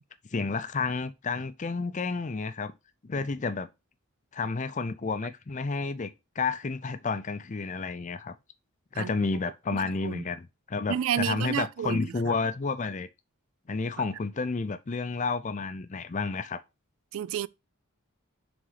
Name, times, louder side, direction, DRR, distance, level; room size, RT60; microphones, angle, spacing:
voice 1, 0.3-2.7 3.0-3.7 4.3-8.3 8.9-13.1 13.7-16.6, left 4 dB, 35° left, 0.5 m, -31 dB
voice 2, 8.9-9.3 9.7-10.3 10.9-12.3 17.1-17.5, right 9 dB, 70° right, 0.3 m, -31 dB
5.7 x 4.0 x 4.8 m
head